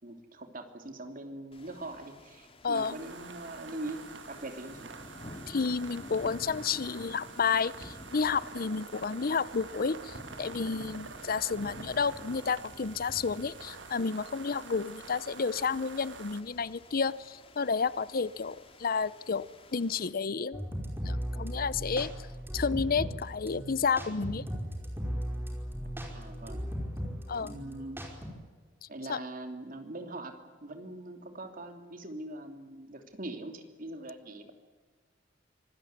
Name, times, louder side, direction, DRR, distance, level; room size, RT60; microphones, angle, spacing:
voice 1, 0.0-4.0 4.3-4.9 26.1-26.6 27.4-28.1 28.9-34.5, right 1 dB, 50° right, 6 dB, 3.1 m, -42 dB
sound 1, 1.5-20.1, left 1 dB, 30° left, 2.8 m, -51 dB
voice 2, 2.6-3.0 5.5-20.7 21.0-22.1 22.5-24.4 27.3-27.6 29.1-29.2, left 5 dB, 50° left, 18 dB, 0.7 m, -31 dB
sound 2, 2.7-16.4, right 5 dB, 75° right, 1.5 m, -47 dB
sound 3, 20.5-28.3, equal, 10° right, 5.2 m, -37 dB
25.5 x 20.0 x 9.5 m, 1.4 s
head